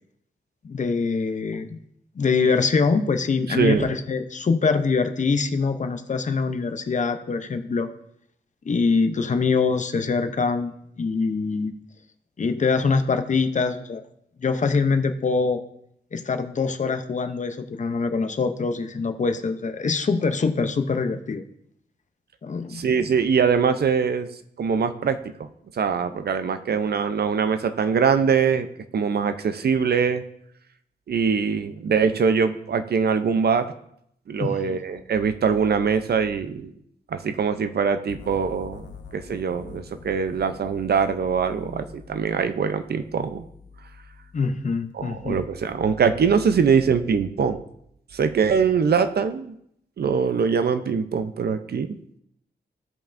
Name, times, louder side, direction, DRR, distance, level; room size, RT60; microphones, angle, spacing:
voice 1, 0.6-1.8 2.2-7.9 8.6-11.7 12.4-14.0 14.4-15.6 16.1-21.4 22.4-22.9 34.4-34.8 44.3-45.4, left 4 dB, 40° left, 8 dB, 0.6 m, -24 dB
voice 2, 3.5-3.9 22.7-24.3 24.6-25.5 25.8-28.7 28.9-30.2 31.1-33.7 34.3-36.7 37.1-38.8 39.1-43.4 44.9-47.6 48.1-49.6 50.0-52.0, right 6 dB, 60° right, 10 dB, 0.5 m, -23 dB
sound 1, 38.1-44.9, left 5 dB, 85° left, 0.8 m, -45 dB
15.5 x 5.4 x 2.5 m, 0.73 s
wide cardioid pair, 135°, 18 cm